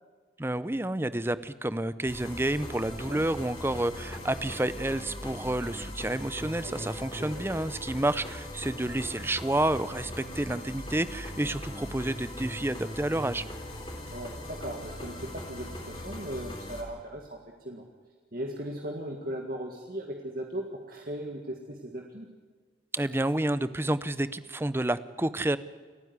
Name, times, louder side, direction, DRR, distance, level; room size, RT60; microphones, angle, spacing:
voice 1, 0.4-13.4 22.9-25.6, right 1 dB, 10° right, 15 dB, 0.6 m, -29 dB
sound 1, 2.0-16.8, left 1 dB, 25° left, 3.8 m, -40 dB
voice 2, 14.1-17.8 18.3-22.3, right 1 dB, 50° right, 1 dB, 1.9 m, -38 dB
29.0 x 9.8 x 9.7 m, 1.5 s
head